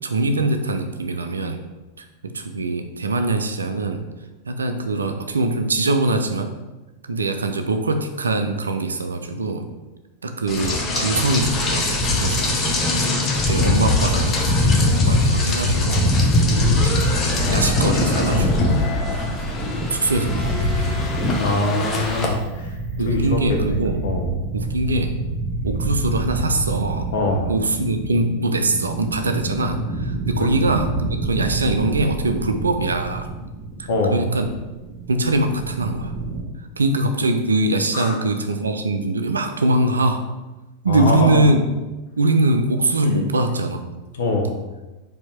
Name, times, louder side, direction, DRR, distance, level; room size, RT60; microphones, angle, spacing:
voice 1, 0.0-1.6 2.0-4.0 4.5-6.5 7.1-9.6 10.2-11.9 12.2-12.6 13.5-16.2 16.8-17.2 17.5-18.9 19.9-20.9 23.0-24.0 24.5-25.1 25.6-27.1 27.5-33.3 33.8-34.5 35.1-36.1 36.6-40.2 40.8-41.6 42.2-43.8, right 2 dB, 75° right, 7 dB, 0.4 m, -22 dB
Rain, 10.5-22.3, left 2 dB, 25° left, 0.8 m, -20 dB
voice 2, 16.5-16.8 21.4-22.7 23.0-23.8 24.0-24.3 27.1-27.5 30.4-30.6 33.9-34.2 37.9-38.2 40.9-41.4 43.1-43.2 44.2-44.5, left 2 dB, 60° left, 1 dB, 0.8 m, -23 dB
sound 1, 16.5-36.4, right 2 dB, 5° left, 1.1 m, -29 dB
4.4 x 2.8 x 4.3 m, 1.1 s
figure-of-eight pair, 90°, 0 cm